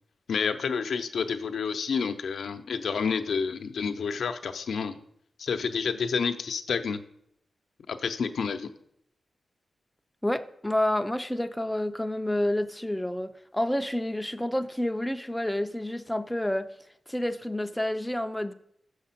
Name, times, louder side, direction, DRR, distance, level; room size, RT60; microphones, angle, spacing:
voice 1, 0.3-5.0 5.4-7.0 7.9-8.7, left 6 dB, 80° left, 0.6 m, -29 dB
voice 2, 10.2-16.7 17.1-18.5, left 1 dB, 5° left, 0.3 m, -29 dB
7.4 x 6.4 x 5.7 m
wide cardioid pair, 150°, 0 cm